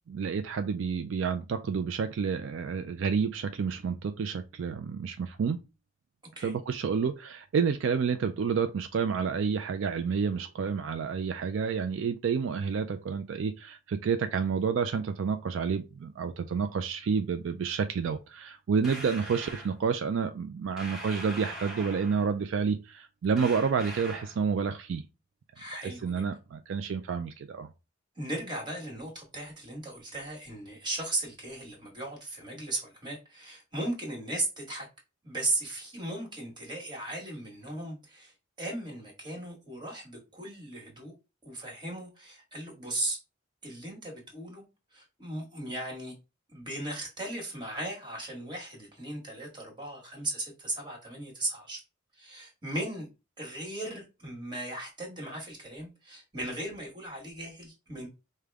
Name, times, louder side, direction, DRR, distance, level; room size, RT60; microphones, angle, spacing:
voice 1, 0.1-5.6 6.4-25.0 25.7-27.7, right 6 dB, 70° right, 0.4 m, -29 dB
sound 1, 18.8-19.7 20.8-22.3 23.4-24.4, right 1 dB, 5° right, 1.2 m, -42 dB
voice 2, 25.5-26.2 28.2-34.9 35.2-38.3 38.6-41.1 41.4-43.2 43.6-44.7 44.9-46.1 46.5-51.8 52.2-53.1 53.4-58.1, right 2 dB, 25° right, 1.6 m, -37 dB
5.0 x 2.2 x 3.4 m
head